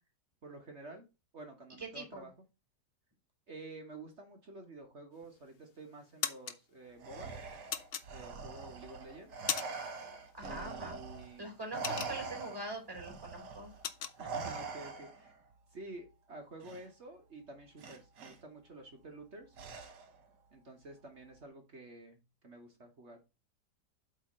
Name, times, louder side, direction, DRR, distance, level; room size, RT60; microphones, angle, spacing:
voice 1, 0.4-1.0 1.3-2.3 3.5-7.4 8.1-9.4 10.4-11.5 14.2-15.3 15.7-19.6 20.5-23.2, right 2 dB, 45° right, 4 dB, 1.4 m, -50 dB
voice 2, 1.8-2.2 10.3-11.0 11.4-13.7, right 2 dB, 15° right, 0 dB, 3.8 m, -43 dB
sound 1, 5.2-5.6 6.0-6.6 7.7-8.6 9.0-10.0 10.2-10.5 10.9-12.6 12.9-13.1 13.4-14.2, left 8 dB, 65° left, 0.5 m, -38 dB
Respiratory sounds, 7.0-11.4 11.7-15.4 16.6-16.8 17.8-18.4 19.6-20.2, right 4 dB, 70° right, 1.8 m, -43 dB
8.1 x 3.4 x 5.4 m, 0.28 s
omnidirectional pair, 1.9 m